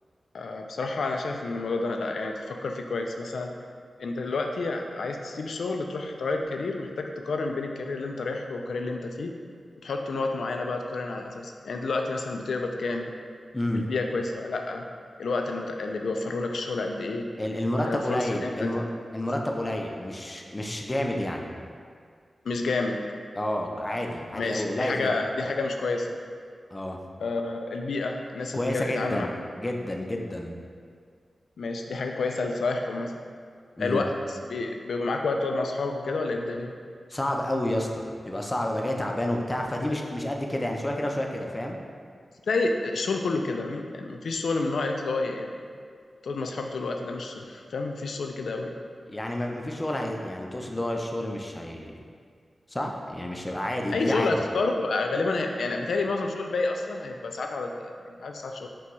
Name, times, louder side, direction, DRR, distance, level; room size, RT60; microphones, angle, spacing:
voice 1, 0.3-3.5 4.0-9.3 9.8-13.1 13.7-14.9 15.2-17.3 17.8-18.7 22.4-23.0 24.3-26.1 27.2-29.3 31.6-33.1 33.8-36.8 42.5-45.5 46.2-48.8 53.9-58.7, left 3 dB, 90° left, 3 dB, 0.3 m, -29 dB
voice 2, 13.5-13.8 17.4-18.9 19.1-21.5 23.4-25.1 26.7-27.0 28.5-29.3 29.6-30.6 33.8-34.0 37.1-41.8 49.1-51.9 52.7-54.3, left 1 dB, 20° left, 1 dB, 0.4 m, -30 dB
5.9 x 2.3 x 3.0 m, 2.1 s
wide cardioid pair, 75°, 0 cm